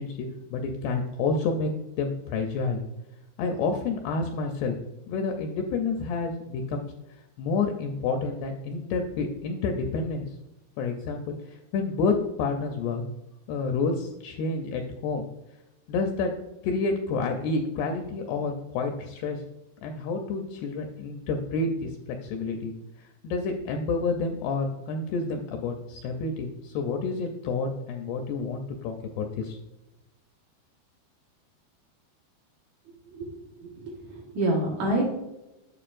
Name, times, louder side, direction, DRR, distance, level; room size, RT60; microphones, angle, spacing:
voice 1, 0.0-2.8 3.4-4.8 5.1-6.9 7.4-10.4 10.8-13.0 13.5-15.2 15.9-16.3 16.6-19.4 19.8-22.7 23.0-29.6, left 4 dB, 80° left, 4 dB, 2.4 m, -29 dB
voice 2, 33.6-35.0, right 1 dB, 65° right, -3 dB, 1.9 m, -28 dB
8.8 x 6.9 x 2.5 m, 0.96 s
omnidirectional pair, 5.2 m